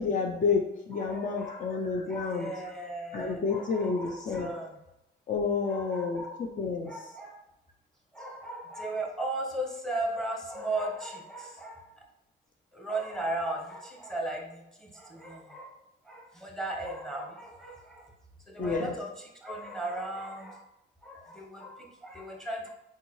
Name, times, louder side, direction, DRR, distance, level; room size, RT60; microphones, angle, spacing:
voice 1, 0.0-2.5 3.1-4.5 5.3-6.9 18.6-18.9, left 4 dB, 40° left, 2 dB, 0.6 m, -30 dB
voice 2, 0.9-1.7 2.1-4.8 5.7-6.4 6.8-7.4 8.1-12.0 12.7-15.8 16.0-18.1 18.5-20.6 21.0-22.7, right 1 dB, 5° left, 0 dB, 1.1 m, -37 dB
4.5 x 3.7 x 3.2 m, 0.91 s
cardioid pair, 90°, 20 cm